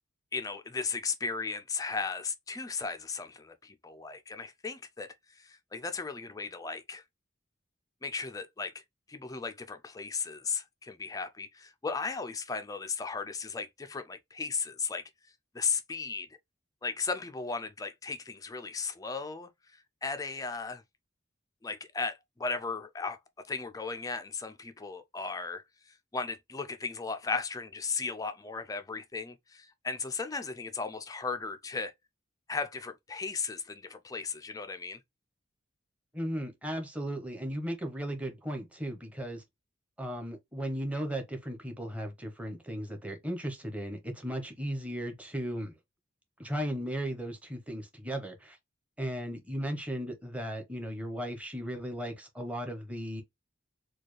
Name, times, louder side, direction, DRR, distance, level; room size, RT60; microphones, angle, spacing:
voice 1, 0.3-7.0 8.0-8.8 9.1-15.0 15.5-16.3 16.8-20.8 21.6-23.2 23.5-31.9 32.5-35.0, left 4 dB, 20° left, 0.4 m, -36 dB
voice 2, 36.1-39.4 40.0-45.7 46.4-48.6 49.0-53.2, equal, 5° right, 0.9 m, -36 dB
4.2 x 2.3 x 3.1 m
head